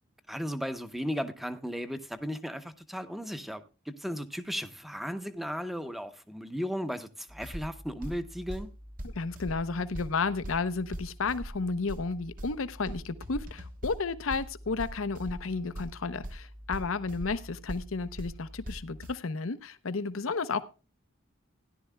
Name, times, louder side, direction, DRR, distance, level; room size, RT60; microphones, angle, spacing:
voice 1, 0.3-8.7, equal, ahead, 0.7 m, -36 dB
sound 1, 7.3-19.1, equal, 45° right, 1.2 m, -42 dB
voice 2, 9.0-20.6, left 4 dB, 90° left, 0.7 m, -32 dB
17.0 x 11.0 x 2.2 m
head